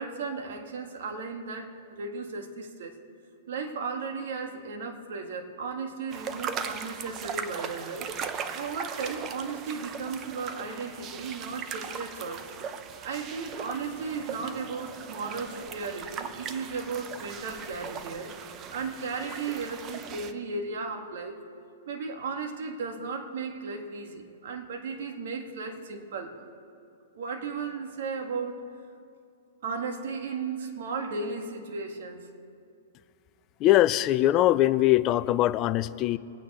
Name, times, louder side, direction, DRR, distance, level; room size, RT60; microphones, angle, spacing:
voice 1, 0.0-2.9 3.5-12.4 13.0-18.3 18.7-21.4 21.9-26.5 27.2-28.7 29.6-32.3, right 4 dB, 65° right, 4 dB, 1.7 m, -35 dB
sound 1, 6.1-20.3, right 7 dB, 25° right, 0.6 m, -39 dB
voice 2, 33.6-36.2, left 14 dB, 30° left, 14 dB, 0.4 m, -22 dB
23.0 x 9.0 x 4.3 m, 2.5 s
hypercardioid pair, 155°, 0 cm